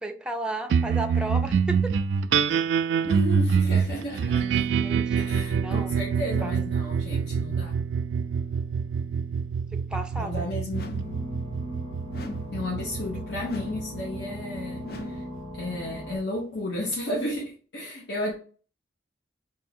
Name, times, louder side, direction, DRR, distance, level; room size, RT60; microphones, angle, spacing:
voice 1, 0.0-1.9 4.8-5.9 6.4-6.5 9.7-10.5, right 1 dB, 5° right, 0.4 m, -34 dB
sound 1, 0.7-15.4, right 6 dB, 80° right, 0.3 m, -26 dB
voice 2, 3.0-4.6 5.1-7.8 10.2-10.8 12.5-15.2 15.6-18.4, left 1 dB, 75° left, 1.0 m, -33 dB
sound 2, 10.7-11.3 12.1-12.7 13.4-14.0 14.8-15.4, left 3 dB, 55° left, 0.5 m, -39 dB
sound 3, 10.9-16.2, left 1 dB, 25° left, 1.6 m, -38 dB
3.6 x 2.6 x 4.2 m
head